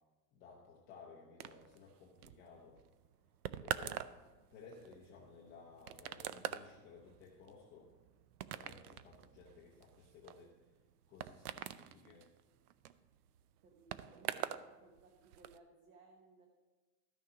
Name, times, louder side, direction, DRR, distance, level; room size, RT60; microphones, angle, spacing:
voice 1, 0.3-2.8 3.6-4.0 4.5-7.9 8.5-10.5 11.1-12.3, left 5 dB, 20° left, -3 dB, 0.7 m, -57 dB
sound 1, 1.4-14.7 14.9-15.6, right 11 dB, 65° right, 0.6 m, -45 dB
voice 2, 13.6-16.5, right 4 dB, 35° right, 2 dB, 1.0 m, -62 dB
13.0 x 6.5 x 4.8 m, 1.2 s
supercardioid pair, 175°, 49 cm